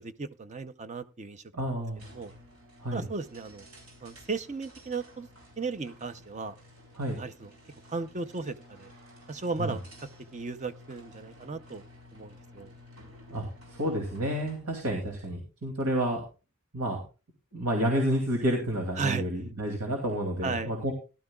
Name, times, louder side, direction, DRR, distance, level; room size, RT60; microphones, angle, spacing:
voice 1, 0.0-1.4 2.1-2.3 2.9-3.7 4.0-5.3 5.6-6.6 7.2-7.5 7.9-8.9 9.3-9.8 10.3-11.8 12.1-12.7 19.0-19.2 20.4-20.7, right 4 dB, 30° right, 12 dB, 0.6 m, -35 dB
voice 2, 1.5-2.0 2.8-3.0 7.0-7.2 9.6-9.8 13.3-13.4 13.8-16.2 16.7-17.0 17.5-20.9, right 1 dB, 85° right, 2 dB, 2.6 m, -30 dB
sound 1, 1.9-14.7, left 1 dB, 65° right, 4.4 m, -53 dB
16.5 x 12.0 x 2.3 m, 0.32 s
head